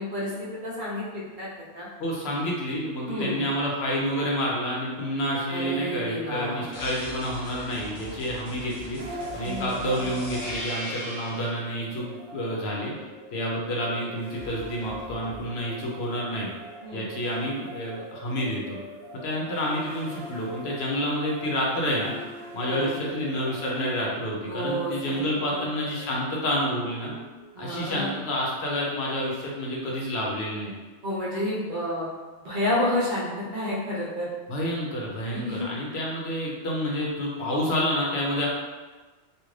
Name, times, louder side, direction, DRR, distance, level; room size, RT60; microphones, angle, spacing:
voice 1, 0.0-1.9 3.1-3.4 5.5-6.6 9.4-10.1 16.8-17.1 22.7-23.3 24.4-25.2 25.5-25.7 27.5-28.2 31.0-32.1 32.4-34.3 35.3-35.7, left 1 dB, 50° right, -6 dB, 0.8 m, -30 dB
voice 2, 2.0-9.0 9.3-12.9 13.3-16.5 16.9-18.8 19.2-22.2 22.5-27.1 27.6-30.7 34.5-38.5, equal, 70° left, -3 dB, 0.8 m, -29 dB
sound 1, 6.7-11.6 14.3-15.4, equal, 30° left, 0.7 m, -39 dB
sound 2, 9.0-28.1, right 1 dB, 85° right, 0.9 m, -43 dB
2.5 x 2.4 x 3.1 m, 1.3 s
omnidirectional pair, 1.2 m